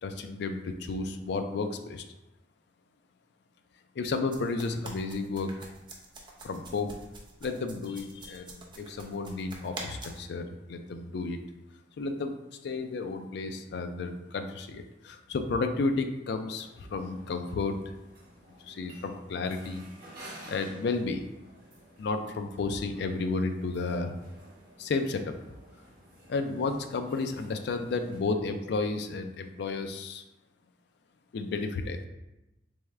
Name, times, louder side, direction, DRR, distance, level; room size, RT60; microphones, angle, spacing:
voice 1, 0.0-2.0 4.0-5.7 6.4-6.9 7.4-11.4 12.0-12.3 12.6-17.9 18.6-19.8 20.5-21.2 22.0-24.2 24.8-25.3 26.3-30.2 31.3-32.1, left 3 dB, 65° left, 7 dB, 0.4 m, -32 dB
sound 1, 4.3-10.2, right 2 dB, 25° right, 0.6 m, -45 dB
sound 2, 16.6-28.2, right 1 dB, 55° right, 1.1 m, -53 dB
3.5 x 3.4 x 3.2 m, 0.97 s
head